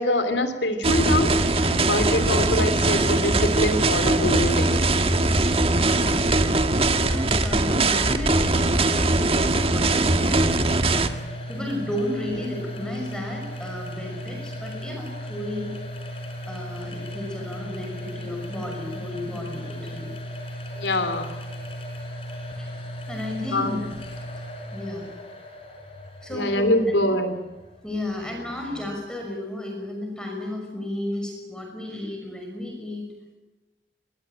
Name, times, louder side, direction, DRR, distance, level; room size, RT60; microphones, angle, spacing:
voice 1, 0.0-4.8 20.7-21.3 23.5-23.8 26.3-27.4, left 1 dB, 80° left, 10 dB, 3.2 m, -24 dB
sound 1, 0.8-11.1, right 2 dB, 30° right, 1.6 m, -21 dB
voice 2, 5.7-10.7 11.5-15.7 16.5-20.1 22.6-22.7 23.1-23.8 24.7-25.0 26.2-26.7 27.8-33.1, left 1 dB, 5° left, 1 dB, 5.9 m, -33 dB
sound 2, 10.3-29.1, equal, 30° left, 5.4 m, -37 dB
26.0 x 21.5 x 9.0 m, 1.2 s
head